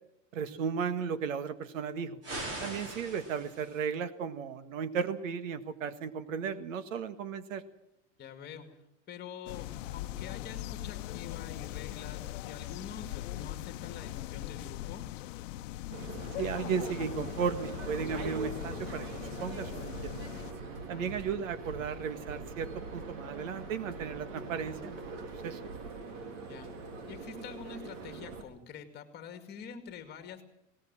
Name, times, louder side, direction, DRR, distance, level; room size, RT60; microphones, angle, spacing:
voice 1, 0.3-2.2 2.6-7.6 16.4-19.1 19.4-20.3 20.9-25.2 25.4-25.6, right 6 dB, 90° right, 12 dB, 1.8 m, -35 dB
sound 1, 2.2-3.8, right 2 dB, 35° right, 5.2 m, -41 dB
voice 2, 8.2-8.7 9.1-15.0 20.7-21.1 26.5-26.7 27.1-30.4, left 7 dB, 25° left, 7 dB, 2.3 m, -46 dB
sound 2, 9.5-20.5, left 16 dB, 75° left, 0.9 m, -40 dB
sound 3, 15.9-28.4, right 3 dB, 75° right, 3.8 m, -42 dB
19.5 x 18.5 x 7.5 m, 0.79 s
supercardioid pair, 155°, 38 cm